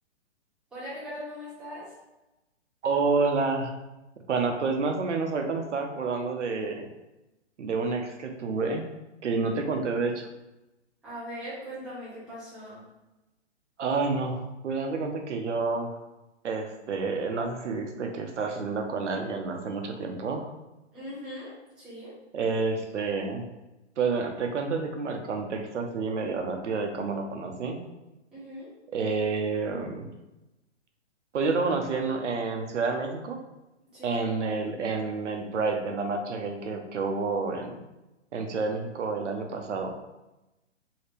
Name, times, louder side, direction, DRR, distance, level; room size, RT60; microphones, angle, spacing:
voice 1, 0.7-1.9 11.0-12.8 20.9-22.1 28.3-28.7 33.9-34.2, equal, ahead, -10 dB, 0.5 m, -40 dB
voice 2, 2.8-3.7 4.3-6.9 7.6-8.9 9.2-10.3 13.8-15.9 16.4-20.5 22.3-23.5 24.0-27.8 28.9-30.1 31.3-33.4 34.0-37.8 38.3-39.9, right 4 dB, 80° right, 4 dB, 0.7 m, -29 dB
2.8 x 2.7 x 3.3 m, 0.99 s
hypercardioid pair, 145°, 35 cm